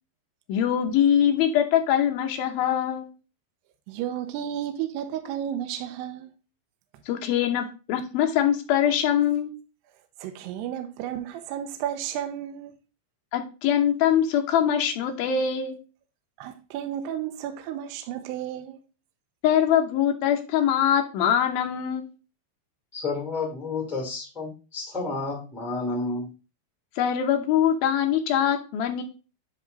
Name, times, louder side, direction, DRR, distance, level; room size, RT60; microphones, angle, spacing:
voice 1, 0.5-3.1 7.1-9.5 13.3-15.8 19.4-22.1 27.0-29.0, left 9 dB, 75° left, 2.3 m, -23 dB
voice 2, 3.9-6.3 10.2-12.7 16.4-18.8, right 10 dB, 80° right, 2.7 m, -32 dB
voice 3, 22.9-26.3, left 3 dB, ahead, 1.0 m, -31 dB
10.5 x 3.7 x 3.9 m
omnidirectional pair, 5.2 m